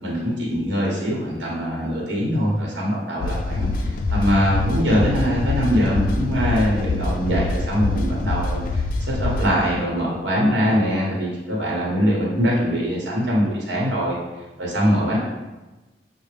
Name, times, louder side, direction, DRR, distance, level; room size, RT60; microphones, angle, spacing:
voice 1, 0.0-8.8 9.1-14.1 14.6-15.2, equal, 90° right, -4 dB, 0.9 m, -22 dB
sound 1, 3.2-9.5, left 2 dB, 50° left, 0.3 m, -25 dB
5.7 x 2.0 x 3.3 m, 1.1 s
head